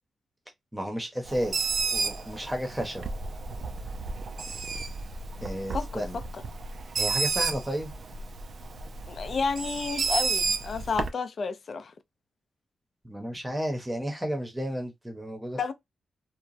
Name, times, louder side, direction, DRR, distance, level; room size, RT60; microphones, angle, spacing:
voice 1, 0.7-3.1 5.4-6.2 7.0-7.9 13.0-15.7, equal, 10° right, 0.8 m, -32 dB
Bird, 1.2-11.1, right 4 dB, 50° right, 0.4 m, -32 dB
voice 2, 5.7-6.2 9.1-11.9 15.6-15.7, left 5 dB, 45° left, 0.4 m, -31 dB
2.9 x 2.2 x 2.5 m
wide cardioid pair, 155°, 0 cm